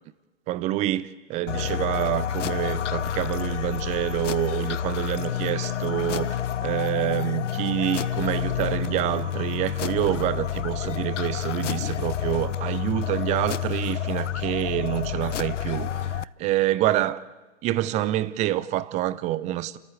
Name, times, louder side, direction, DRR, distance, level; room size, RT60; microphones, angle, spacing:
voice 1, 0.5-17.2 17.6-19.8, right 14 dB, 20° right, 0.6 m, -27 dB
sound 1, 1.5-16.2, left 9 dB, 80° left, 0.6 m, -29 dB
29.5 x 13.5 x 8.1 m
figure-of-eight pair, 115°, 36 cm